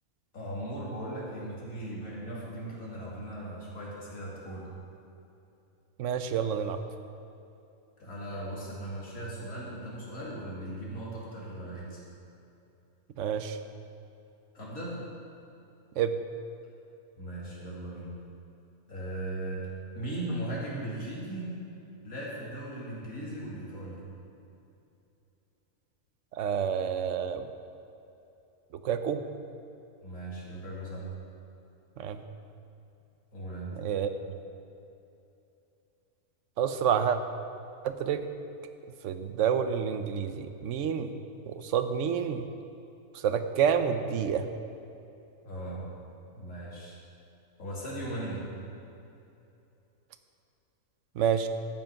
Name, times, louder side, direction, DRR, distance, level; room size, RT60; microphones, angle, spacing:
voice 1, 0.3-4.7 8.0-12.0 14.5-15.0 17.2-18.1 18.9-19.6 19.9-21.5 22.0-24.0 30.0-31.0 33.3-33.7 45.4-45.9 46.3-47.0 47.6-48.4, right 1 dB, 70° left, -6 dB, 3.1 m, -38 dB
voice 2, 6.0-6.8 13.2-13.6 16.0-16.2 26.3-27.5 28.8-29.2 32.0-32.2 33.8-34.1 36.6-37.2 37.8-38.2 39.0-41.1 41.5-42.5 43.1-44.5 51.2-51.5, right 8 dB, 65° right, 9 dB, 0.9 m, -28 dB
12.5 x 7.6 x 5.8 m, 2.8 s
omnidirectional pair, 1.5 m